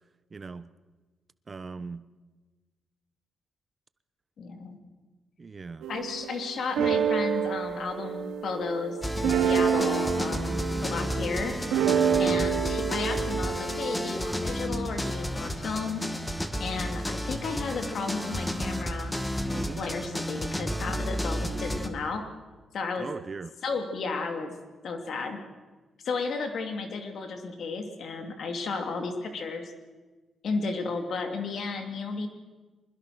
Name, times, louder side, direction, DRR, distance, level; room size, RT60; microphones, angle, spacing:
voice 1, 0.3-0.7 1.5-2.1 5.4-5.9 19.5-19.8 23.0-23.5, right 4 dB, 40° right, 14 dB, 1.0 m, -39 dB
voice 2, 4.4-4.8 5.9-10.5 10.8-11.5 12.2-16.0 16.6-19.1 19.5-22.2 22.7-23.1 23.6-24.5 24.8-25.4 26.0-29.7 30.4-32.3, left 4 dB, 70° left, 5 dB, 3.1 m, -33 dB
sound 1, 5.8-14.1, right 8 dB, 85° right, 1.2 m, -28 dB
sound 2, 9.0-21.9, equal, 10° left, 2.2 m, -32 dB
24.5 x 21.0 x 6.3 m, 1.3 s
cardioid pair, 65°, 0 cm